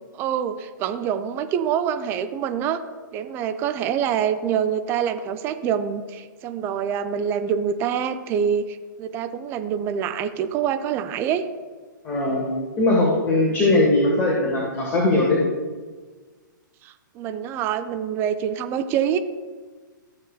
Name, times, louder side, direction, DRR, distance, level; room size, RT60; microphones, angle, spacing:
voice 1, 0.1-2.8 3.1-11.5 16.8-19.2, right 8 dB, 20° right, 9 dB, 0.4 m, -25 dB
voice 2, 12.0-12.5 12.8-15.4, left 2 dB, 20° left, -2 dB, 1.4 m, -20 dB
13.5 x 7.0 x 2.3 m, 1.4 s
figure-of-eight pair, 115°, 11 cm